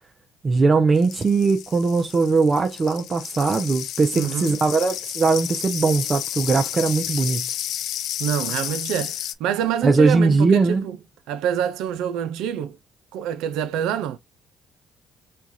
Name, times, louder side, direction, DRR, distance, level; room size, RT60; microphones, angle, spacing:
voice 1, 0.4-7.5 9.8-10.8, right 4 dB, 35° right, 0.6 m, -20 dB
sound 1, 1.0-9.3, left 11 dB, 75° left, 0.3 m, -31 dB
voice 2, 4.1-4.6 8.2-11.0 11.3-12.8 13.1-14.2, right 9 dB, 85° right, 0.5 m, -26 dB
4.5 x 2.4 x 2.6 m
supercardioid pair, 80°, 0 cm